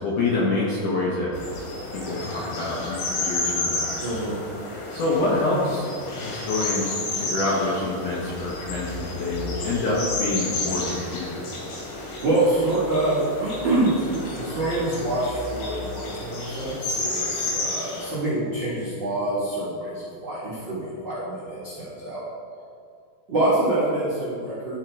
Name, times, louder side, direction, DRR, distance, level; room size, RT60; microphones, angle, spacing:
voice 1, 0.0-1.3 1.9-4.0 4.9-11.5, left 2 dB, 70° left, -6 dB, 2.0 m, -26 dB
sound 1, 1.3-18.2, left 2 dB, 85° left, 3.7 m, -31 dB
voice 2, 4.0-4.4 12.2-22.2 23.3-24.8, right 2 dB, 50° right, -9 dB, 1.4 m, -26 dB
13.0 x 4.5 x 4.6 m, 2.4 s
omnidirectional pair, 4.9 m